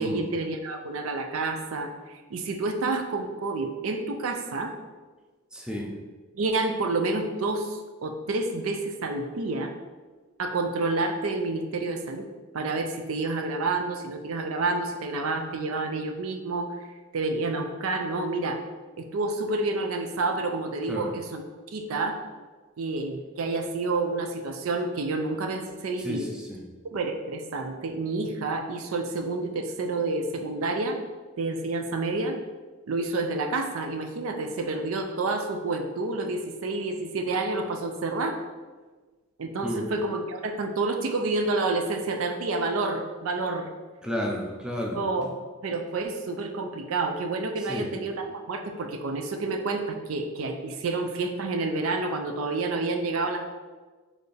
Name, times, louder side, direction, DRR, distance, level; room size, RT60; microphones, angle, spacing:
voice 1, 0.0-4.7 6.3-9.7 10.4-12.3 12.5-16.8 17.1-18.6 19.0-21.4 21.7-22.2 22.8-26.3 26.9-31.0 31.4-32.4 32.9-38.4 39.4-43.7 44.9-45.3 45.6-53.4, right 3 dB, 75° right, 5 dB, 0.5 m, -29 dB
voice 2, 5.5-5.9 20.9-21.1 26.0-26.7 39.6-39.9 44.0-45.0 47.7-47.9, equal, 5° right, -1 dB, 0.5 m, -32 dB
4.4 x 3.3 x 3.3 m, 1.3 s
head